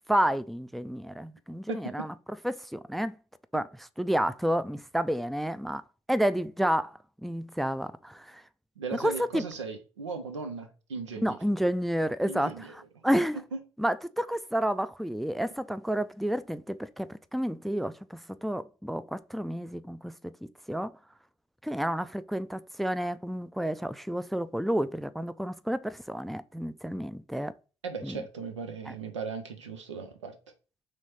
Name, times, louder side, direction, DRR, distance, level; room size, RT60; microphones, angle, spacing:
voice 1, 0.1-2.1 2.4-3.1 3.5-5.8 6.1-8.4 8.9-9.4 11.2-13.4 13.8-20.1 20.7-20.9 21.6-27.5 28.0-28.2, equal, ahead, 0.3 m, -30 dB
voice 2, 1.7-2.1 3.5-3.6 8.8-11.4 12.3-12.7 13.5-13.6 27.8-30.4, right 5 dB, 85° right, 0.5 m, -37 dB
3.8 x 3.2 x 3.2 m
figure-of-eight pair, 40°, 15 cm